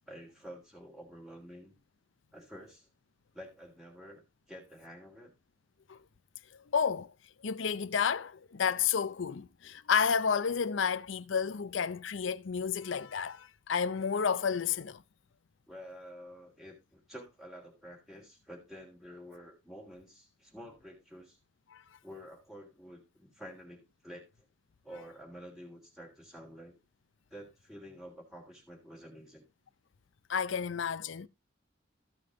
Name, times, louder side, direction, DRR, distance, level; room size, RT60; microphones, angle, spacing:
voice 1, 0.1-1.7 2.3-2.9 3.3-5.3 15.7-21.4 22.0-24.5 24.8-26.8 27.3-29.5, equal, ahead, 3.0 m, -49 dB
voice 2, 6.7-7.1 7.4-15.0 21.7-21.8 30.3-31.3, left 6 dB, 80° left, 0.6 m, -31 dB
14.5 x 5.1 x 3.8 m
head